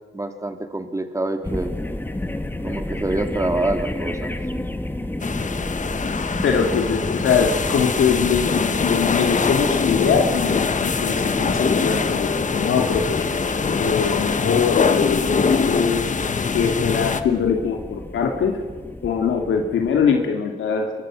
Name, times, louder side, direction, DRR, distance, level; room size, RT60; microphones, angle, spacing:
voice 1, 0.1-1.7 2.6-4.4, right 2 dB, 15° right, 5 dB, 2.9 m, -26 dB
sound 1, 1.4-20.3, left 1 dB, 10° left, 1.6 m, -31 dB
sound 2, 5.2-17.2, left 5 dB, 40° left, 1.4 m, -23 dB
voice 2, 6.4-13.2 13.8-15.4 15.7-16.0 16.5-18.5 19.0-20.9, left 6 dB, 85° left, 2 dB, 2.4 m, -22 dB
27.5 x 24.0 x 6.3 m, 1.4 s
cardioid pair, 90°, 20 cm